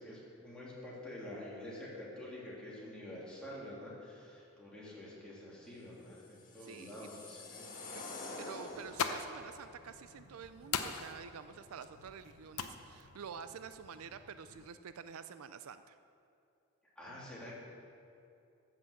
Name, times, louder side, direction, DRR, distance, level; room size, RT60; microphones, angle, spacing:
voice 1, 0.0-7.8 17.0-17.5, left 1 dB, 5° left, -7 dB, 2.9 m, -47 dB
sound 1, 6.2-9.4, left 2 dB, 40° left, 1.4 m, -47 dB
voice 2, 6.6-7.1 8.4-16.0, right 7 dB, 75° right, 11 dB, 0.4 m, -49 dB
sound 2, 8.7-14.7, left 6 dB, 85° left, 0.7 m, -43 dB
13.0 x 6.0 x 7.7 m, 2.6 s
head